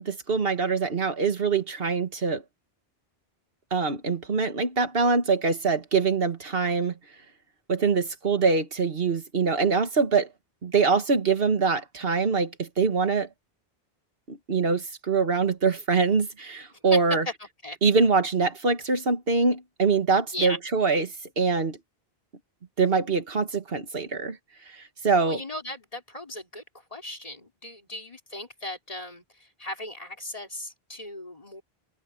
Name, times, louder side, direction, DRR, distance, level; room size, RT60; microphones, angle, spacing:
voice 1, 0.0-2.4 3.7-6.9 7.7-10.3 10.6-13.3 14.3-17.2 17.8-21.8 22.8-24.4 24.7-25.4, right 4 dB, 65° right, 1.7 m, -24 dB
voice 2, 25.3-26.6 26.9-31.6, left 1 dB, 35° left, 4.0 m, -36 dB
omnidirectional pair, 1.1 m